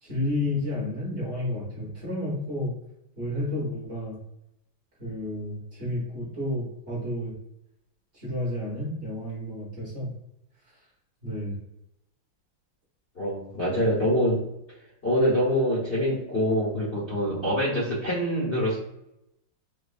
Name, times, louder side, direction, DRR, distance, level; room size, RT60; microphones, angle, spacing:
voice 1, 0.0-2.7 3.2-4.2 5.0-7.3 8.1-10.1 11.2-11.5, left 1 dB, 40° right, -6 dB, 1.3 m, -31 dB
voice 2, 13.2-14.4 15.0-18.8, equal, 40° left, -9 dB, 0.9 m, -25 dB
4.7 x 2.4 x 2.3 m, 0.82 s
omnidirectional pair, 2.3 m